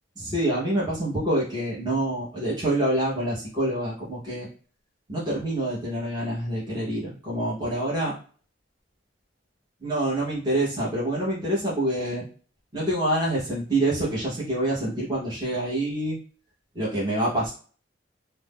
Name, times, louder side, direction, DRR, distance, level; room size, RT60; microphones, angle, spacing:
voice 1, 0.2-4.5 5.1-8.2 9.8-12.2 12.7-16.2 16.7-17.5, right 1 dB, 20° right, -7 dB, 1.0 m, -26 dB
2.6 x 2.1 x 3.5 m, 0.41 s
head